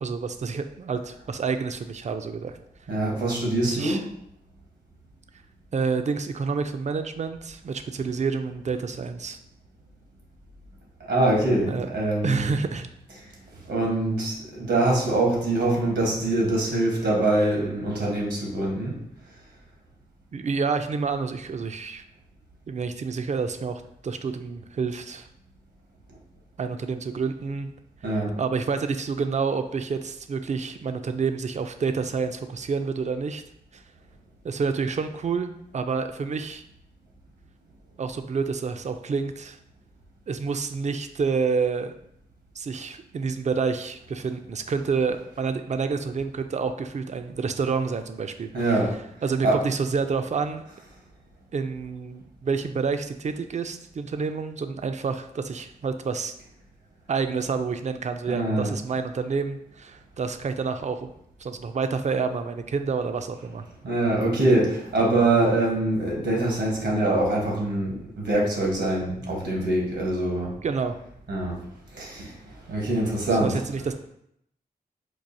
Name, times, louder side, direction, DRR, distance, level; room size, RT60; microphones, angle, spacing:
voice 1, 0.0-2.5 3.6-4.0 5.7-9.4 11.7-11.9 12.2-12.9 20.3-22.0 22.7-25.3 26.6-27.7 28.1-33.4 33.7-33.8 34.4-36.6 38.0-39.6 40.3-41.9 42.6-48.8 49.2-50.6 51.5-56.3 57.1-61.1 61.4-63.7 70.6-71.0 73.4-73.9, right 5 dB, 45° right, 8 dB, 0.4 m, -28 dB
voice 2, 2.9-4.0 11.0-12.5 13.6-19.0 28.0-28.3 48.5-49.0 49.4-49.6 58.3-58.7 63.8-70.6 71.3-71.6 71.9-72.3 72.7-73.6, right 2 dB, 80° right, -2 dB, 1.2 m, -24 dB
4.6 x 2.4 x 2.6 m, 0.74 s
cardioid pair, 45°, 17 cm